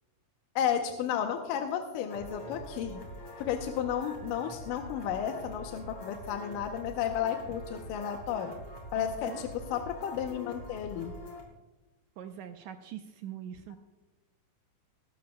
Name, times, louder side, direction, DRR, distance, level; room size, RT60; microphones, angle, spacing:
voice 1, 0.6-3.0 3.4-8.5 8.9-11.1, left 9 dB, 85° left, 4 dB, 2.4 m, -33 dB
sound 1, 2.1-11.4, equal, 45° left, 3.6 m, -45 dB
voice 2, 9.0-9.4 12.2-13.8, right 10 dB, 80° right, 7 dB, 1.8 m, -43 dB
21.0 x 12.5 x 2.2 m, 1.1 s
omnidirectional pair, 3.8 m